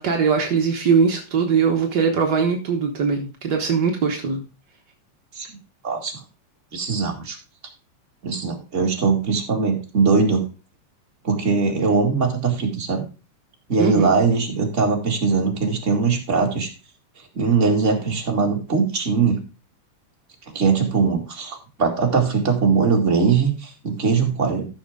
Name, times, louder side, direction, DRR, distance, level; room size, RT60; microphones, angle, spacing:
voice 1, 0.0-4.5 13.8-14.1, right 6 dB, 65° right, 2 dB, 1.0 m, -21 dB
voice 2, 6.7-7.4 8.2-10.5 11.2-13.0 13.7-16.7 17.4-19.4 20.5-24.7, right 5 dB, 25° right, 1 dB, 1.9 m, -21 dB
14.5 x 6.3 x 3.6 m, 0.32 s
omnidirectional pair, 3.6 m